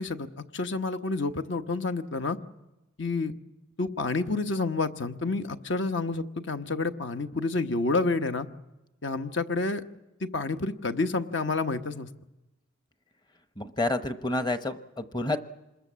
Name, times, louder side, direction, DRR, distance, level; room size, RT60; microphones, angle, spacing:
voice 1, 0.0-2.4 3.0-3.3 3.8-8.5 9.0-9.8 10.2-12.1, left 3 dB, 60° left, 8 dB, 1.1 m, -29 dB
voice 2, 13.6-15.4, left 2 dB, 20° left, 9 dB, 0.9 m, -29 dB
26.5 x 21.0 x 7.4 m, 1.0 s
head